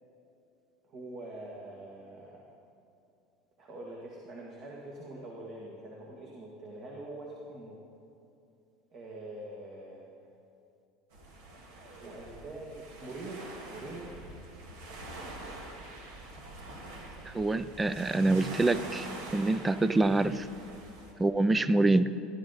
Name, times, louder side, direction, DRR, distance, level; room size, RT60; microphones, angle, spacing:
voice 1, 0.9-2.5 3.6-7.8 8.9-10.0 12.0-14.1, right 2 dB, 50° right, -2 dB, 1.9 m, -44 dB
sound 1, 11.1-21.1, right 2 dB, 80° right, 2.2 m, -45 dB
voice 2, 17.3-19.1 19.3-20.5 21.2-22.1, right 2 dB, 15° right, 14 dB, 0.4 m, -26 dB
15.5 x 11.5 x 4.1 m, 2.6 s
supercardioid pair, 105°, 0 cm